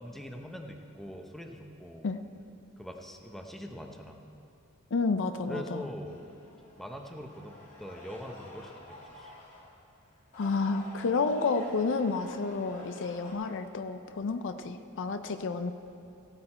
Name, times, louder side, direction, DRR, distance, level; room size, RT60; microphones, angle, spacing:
voice 1, 0.0-2.1 2.8-4.2 5.5-6.2 6.8-9.3, equal, ahead, 3 dB, 0.7 m, -43 dB
voice 2, 4.9-5.8 10.3-15.7, left 4 dB, 60° left, 9 dB, 0.5 m, -30 dB
sound 1, 6.1-9.6 10.2-13.3, left 1 dB, 35° left, 3.2 m, -50 dB
16.0 x 8.9 x 4.3 m, 2.7 s
head